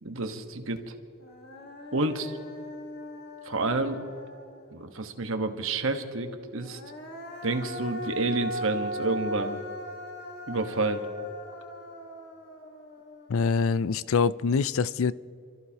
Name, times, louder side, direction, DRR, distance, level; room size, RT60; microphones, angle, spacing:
voice 1, 0.0-0.9 1.9-2.4 3.4-4.0 4.7-6.8 7.4-9.6 10.5-11.0, right 2 dB, 65° right, 1.3 m, -29 dB
Human voice, 0.8-0.9 1.2-4.9 6.5-13.8, equal, 50° left, 1.6 m, -39 dB
voice 2, 13.3-15.1, left 5 dB, 70° left, 0.4 m, -25 dB
28.0 x 14.0 x 2.9 m
head